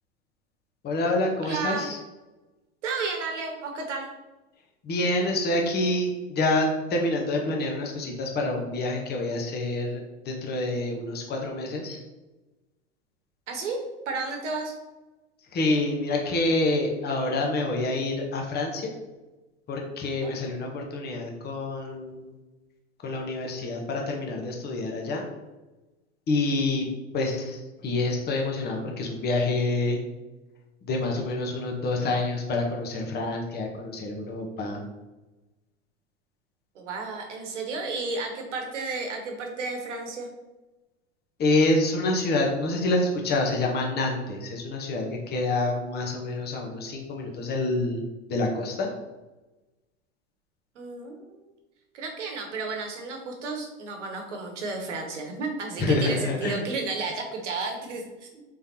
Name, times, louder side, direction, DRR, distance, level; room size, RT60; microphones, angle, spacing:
voice 1, 0.8-2.0 4.8-12.0 15.5-18.9 19.7-22.3 23.0-25.2 26.3-26.9 27.1-30.0 30.8-34.8 41.4-48.0 48.3-48.9 55.8-56.6, left 2 dB, 30° left, 1 dB, 0.9 m, -27 dB
voice 2, 1.4-1.9 2.8-4.1 13.5-14.7 20.2-20.3 36.7-40.3 50.7-51.5 51.9-58.4, right 3 dB, 85° right, 3 dB, 1.0 m, -33 dB
3.8 x 3.2 x 2.8 m, 1.1 s
hypercardioid pair, 90°, 35 cm